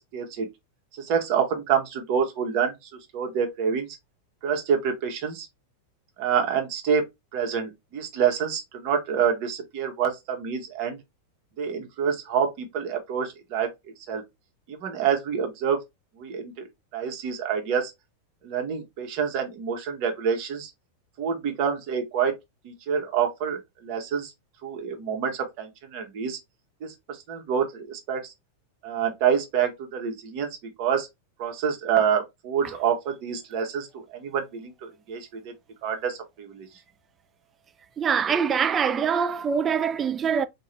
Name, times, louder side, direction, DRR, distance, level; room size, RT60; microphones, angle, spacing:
voice 1, 0.1-0.5 1.0-2.7 3.1-3.9 4.4-5.5 6.2-7.0 7.3-11.0 11.6-13.7 14.1-14.2 14.7-15.8 16.2-16.5 16.9-17.9 18.4-20.7 21.2-22.3 22.6-24.3 24.6-26.4 26.8-26.9 27.3-28.3 28.8-30.5 30.8-31.1 31.4-35.3 35.8-36.7, right 7 dB, 45° right, 0.9 m, -27 dB
voice 2, 38.0-40.5, right 7 dB, 25° right, 0.3 m, -24 dB
3.7 x 2.3 x 3.1 m
figure-of-eight pair, 90°, 0 cm